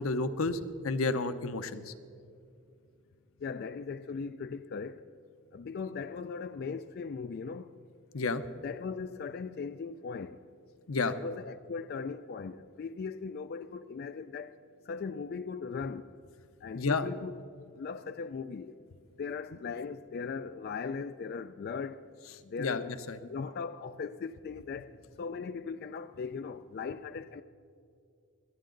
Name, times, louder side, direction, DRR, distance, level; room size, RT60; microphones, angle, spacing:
voice 1, 0.0-1.9 8.1-8.4 10.9-11.1 16.7-17.1 22.6-23.2, left 3 dB, 90° left, 0.7 m, -31 dB
voice 2, 3.4-5.0 5.5-7.7 8.6-10.4 11.1-14.6 14.9-16.1 16.6-17.4 17.8-18.7 19.2-22.0 22.4-23.0 23.2-27.4, left 5 dB, 50° left, 0.3 m, -39 dB
25.0 x 9.3 x 3.9 m
head